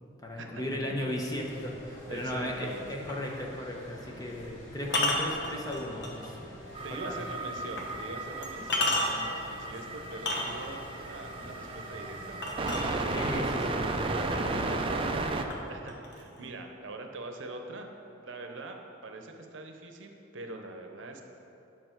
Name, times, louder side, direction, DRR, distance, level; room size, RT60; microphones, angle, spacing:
voice 1, 0.2-6.4 6.9-7.2 13.1-15.3, left 1 dB, 20° left, 0 dB, 0.9 m, -36 dB
sound 1, 1.2-15.1, left 1 dB, 85° left, 2.1 m, -47 dB
voice 2, 2.1-2.8 3.3-3.5 4.1-4.2 6.8-12.8 15.7-17.9 18.2-21.2, right 2 dB, 75° right, 4 dB, 0.8 m, -43 dB
sound 2, 3.1-3.3 4.8-6.3 6.8-6.9 7.8-7.9 8.4-9.4 10.1-10.9 12.4-13.4 14.3-14.4 14.8-15.2 15.5-16.5, left 1 dB, 60° left, 1.1 m, -31 dB
sound 3, 6.7-15.5, right 3 dB, 30° right, 0.4 m, -34 dB
9.0 x 6.2 x 4.5 m, 2.9 s
head